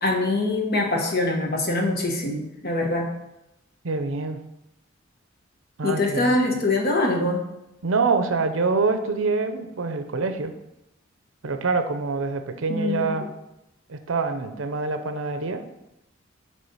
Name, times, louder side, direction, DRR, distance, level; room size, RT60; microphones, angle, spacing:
voice 1, 0.0-3.1 5.8-7.4 12.7-13.2, left 2 dB, 50° left, 1 dB, 1.2 m, -24 dB
voice 2, 3.8-4.4 5.8-6.6 7.8-10.5 11.4-13.3 13.9-15.6, right 4 dB, 80° right, 8 dB, 0.6 m, -25 dB
7.4 x 3.3 x 5.5 m, 0.88 s
head